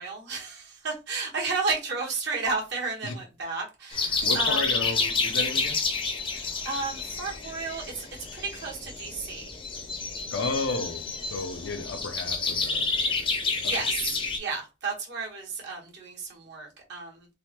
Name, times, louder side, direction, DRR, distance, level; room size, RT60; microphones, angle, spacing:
voice 1, 0.0-4.7 6.2-8.1 8.3-9.6 13.6-17.3, right 4 dB, 60° right, 1.1 m, -33 dB
sound 1, 3.9-14.4, left 4 dB, 25° left, 0.6 m, -29 dB
voice 2, 4.2-5.8 10.3-11.0 11.3-13.2 13.6-13.7, left 3 dB, 70° left, 0.5 m, -33 dB
3.4 x 2.1 x 2.8 m
head